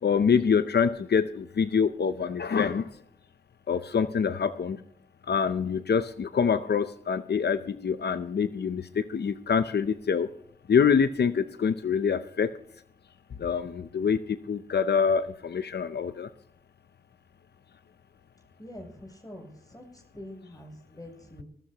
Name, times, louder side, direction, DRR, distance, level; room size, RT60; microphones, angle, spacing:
voice 1, 0.0-2.9 3.7-4.8 5.3-10.3 10.7-12.5 13.4-16.3, left 6 dB, 90° left, 12 dB, 0.6 m, -25 dB
voice 2, 18.6-19.8 20.1-21.4, left 1 dB, 20° left, 2 dB, 7.5 m, -45 dB
19.5 x 14.5 x 2.9 m, 0.66 s
cardioid pair, 50°, 17 cm